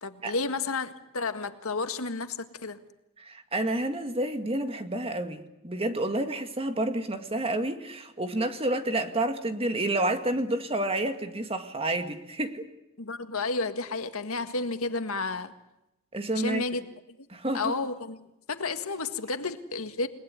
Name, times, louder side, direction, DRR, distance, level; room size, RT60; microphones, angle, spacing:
voice 1, 0.0-2.8 13.0-15.5 16.3-16.8 17.2-17.3 17.5-18.2 18.5-20.1, left 3 dB, 85° left, 1.8 m, -31 dB
voice 2, 3.2-12.7 16.1-16.6 17.3-17.7, right 1 dB, 25° right, 1.9 m, -29 dB
29.0 x 19.0 x 9.6 m
head